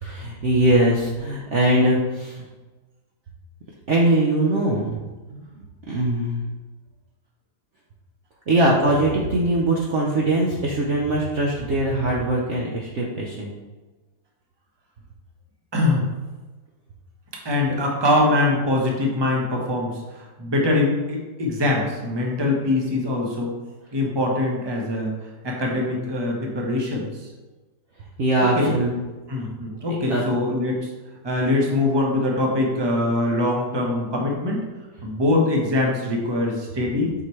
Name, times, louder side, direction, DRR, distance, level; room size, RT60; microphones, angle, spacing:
voice 1, 0.0-2.5 3.9-5.0 5.3-5.5 5.9-6.5 8.5-13.5 28.2-28.9 29.4-29.5 30.1-30.2, right 1 dB, 50° right, -3 dB, 1.0 m, -21 dB
voice 2, 15.7-16.0 17.4-23.5 23.9-25.1 25.4-27.3 28.6-28.7 29.3-30.9 31.2-34.6 35.0-37.1, left 2 dB, 15° right, -1 dB, 1.1 m, -23 dB
7.6 x 6.0 x 3.2 m, 1.2 s
omnidirectional pair, 1.9 m